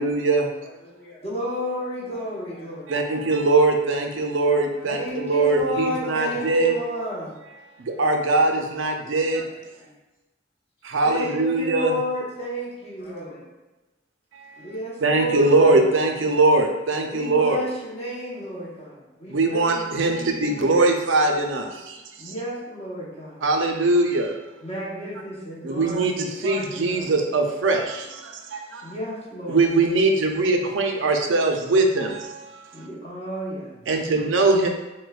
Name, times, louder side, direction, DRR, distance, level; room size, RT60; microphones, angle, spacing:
voice 1, 0.0-0.5 2.9-6.7 7.8-9.5 10.8-11.9 14.3-14.5 15.0-17.6 19.3-22.3 23.4-24.3 25.6-28.9 29.5-32.7 33.9-34.7, right 2 dB, 80° right, 3 dB, 0.5 m, -21 dB
voice 2, 0.6-1.2 2.1-3.2 4.2-6.8 7.9-10.0 11.0-11.3 13.0-13.6, equal, 90° left, -7 dB, 1.0 m, -49 dB
voice 3, 1.2-3.3 4.8-7.3 11.0-13.4 14.6-15.9 17.1-20.9 22.2-23.4 24.6-27.1 28.8-29.7 32.7-33.8 34.1-34.4, equal, 35° left, -8 dB, 1.0 m, -32 dB
6.1 x 2.2 x 2.3 m, 1.1 s
head